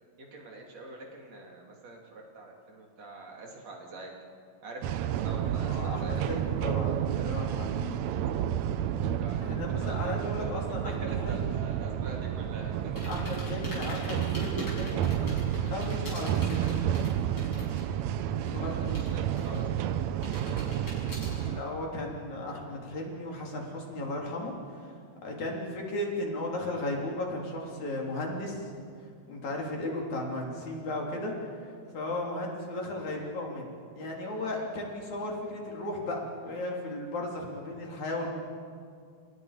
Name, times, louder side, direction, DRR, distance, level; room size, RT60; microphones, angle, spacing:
voice 1, 0.2-4.1 4.6-6.4 9.1-10.6 10.8-13.1 18.4-19.2 19.4-21.2, right 2 dB, 60° right, -1 dB, 4.2 m, -45 dB
sound 1, 4.8-21.6, right 10 dB, 75° right, 2.0 m, -30 dB
voice 2, 5.7-7.9 9.4-11.5 13.1-16.6 18.4-19.1 21.3-24.9 25.2-28.7 29.3-31.7 31.9-33.6 33.9-38.3, left 1 dB, 70° left, -1 dB, 4.8 m, -35 dB
sound 2, 13.0-18.0 18.2-19.8 20.2-21.5, left 1 dB, 40° left, 7.6 m, -43 dB
29.5 x 29.0 x 5.1 m, 2.3 s
omnidirectional pair, 3.4 m